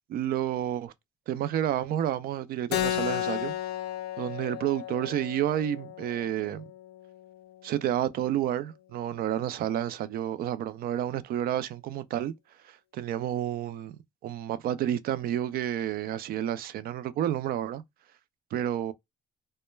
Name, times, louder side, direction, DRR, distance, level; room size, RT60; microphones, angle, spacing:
voice 1, 0.1-0.9 1.3-3.5 4.2-6.6 7.6-12.3 12.6-14.0 14.2-17.8 18.5-18.9, right 11 dB, 60° right, 0.4 m, -30 dB
Keyboard (musical), 2.7-7.8, left 12 dB, 80° left, 0.4 m, -34 dB
2.2 x 2.1 x 3.0 m
cardioid pair, 110°, 17 cm